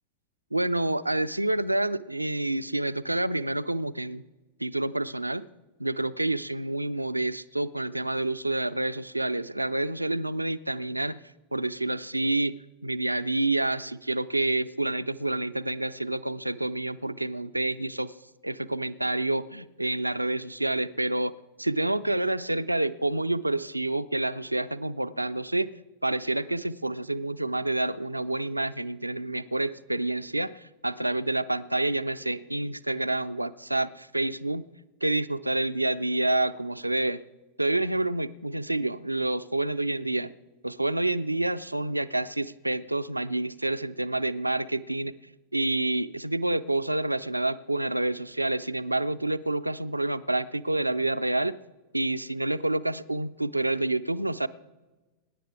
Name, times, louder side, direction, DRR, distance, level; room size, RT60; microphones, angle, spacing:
voice 1, 0.5-4.2 4.6-5.5 5.8-11.2 11.5-12.6 12.8-18.1 18.4-21.3 21.6-25.7 26.0-34.7 35.0-37.2 37.6-40.3 40.6-45.1 45.5-51.5 51.9-54.5, right 2 dB, 85° right, 13 dB, 0.5 m, -28 dB
25.0 x 10.5 x 3.5 m, 1.1 s
figure-of-eight pair, 90°, 0 cm